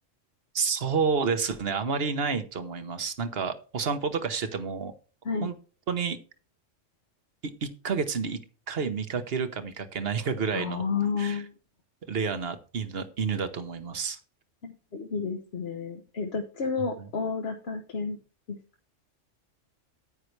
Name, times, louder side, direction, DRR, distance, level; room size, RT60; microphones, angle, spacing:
voice 1, 0.5-4.9 5.4-5.6 5.9-6.2 7.4-8.4 8.7-10.8 11.2-11.4 12.1-14.2 17.0-17.1, right 5 dB, 55° right, 9 dB, 1.2 m, -29 dB
voice 2, 10.5-11.5 14.6-18.2 18.5-18.6, left 5 dB, 60° left, 3 dB, 1.2 m, -31 dB
9.6 x 9.3 x 3.2 m, 0.37 s
omnidirectional pair, 1.3 m